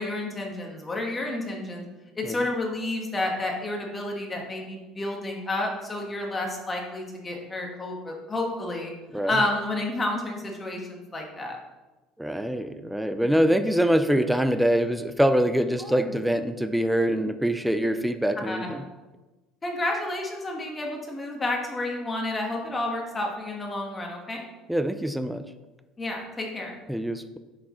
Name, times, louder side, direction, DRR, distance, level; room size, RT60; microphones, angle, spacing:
voice 1, 0.0-1.8 2.1-8.9 9.3-11.6 15.8-16.1 18.4-18.9 19.6-24.5 26.0-26.7, left 2 dB, 20° left, 0 dB, 1.5 m, -30 dB
voice 2, 12.2-18.8 24.7-25.4 26.9-27.4, equal, 5° right, 10 dB, 0.4 m, -24 dB
9.5 x 6.4 x 3.1 m, 1.1 s
cardioid pair, 120°, 0 cm